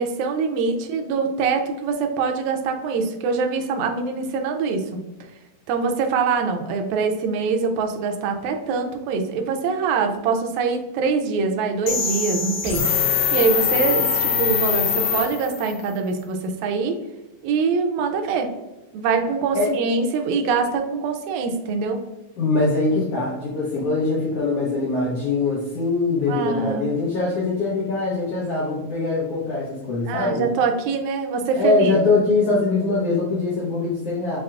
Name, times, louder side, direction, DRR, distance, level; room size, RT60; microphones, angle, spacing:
voice 1, 0.0-5.0 5.7-12.8 13.3-17.0 17.4-18.5 18.9-22.0 26.3-26.9 30.1-32.0, right 5 dB, 80° right, 4 dB, 1.9 m, -24 dB
sound 1, 11.9-15.7, left 7 dB, 90° left, 2.2 m, -22 dB
voice 2, 22.4-30.5 31.5-34.4, left 3 dB, 65° left, -6 dB, 1.7 m, -22 dB
7.4 x 2.8 x 2.4 m, 1.0 s
omnidirectional pair, 3.5 m